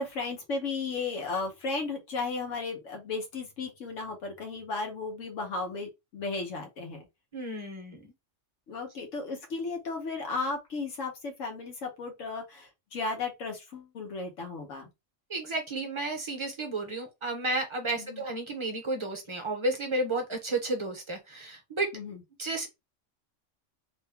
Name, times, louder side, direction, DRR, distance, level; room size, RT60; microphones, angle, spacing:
voice 1, 0.0-7.1 8.7-14.9 18.0-18.2 21.9-22.2, left 3 dB, 85° left, 1.2 m, -35 dB
voice 2, 7.3-8.1 15.3-21.9 22.4-22.7, right 2 dB, 25° right, 0.8 m, -32 dB
3.0 x 2.2 x 3.5 m
omnidirectional pair, 1.3 m